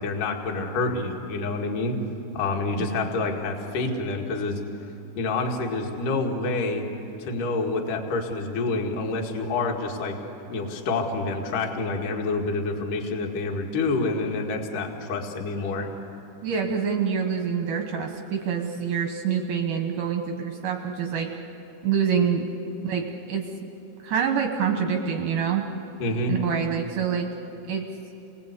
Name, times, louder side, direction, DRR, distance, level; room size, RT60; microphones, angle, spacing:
voice 1, 0.0-2.0 2.3-4.6 5.2-6.8 7.2-10.2 10.5-15.9 26.0-26.3, left 3 dB, 55° left, 1 dB, 3.2 m, -27 dB
voice 2, 2.7-3.0 16.4-21.3 21.8-22.5 22.8-23.5 24.0-25.6 26.3-27.3 27.7-27.9, right 7 dB, 65° right, 3 dB, 2.4 m, -26 dB
28.5 x 21.0 x 8.3 m, 3.0 s
omnidirectional pair, 4.9 m